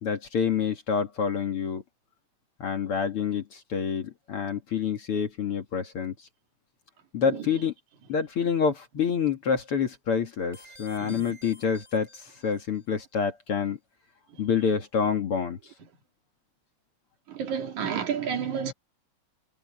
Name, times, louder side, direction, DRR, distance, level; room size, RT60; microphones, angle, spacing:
voice 1, 0.0-1.8 2.6-6.1 7.1-7.7 8.1-13.8 14.4-15.6, left 6 dB, 50° left, 2.5 m, -27 dB
sound 1, 10.5-12.9, left 1 dB, 10° right, 7.9 m, -52 dB
voice 2, 11.0-11.4 14.3-14.4 17.3-18.7, right 7 dB, 70° right, 3.6 m, -31 dB
omnidirectional pair, 3.6 m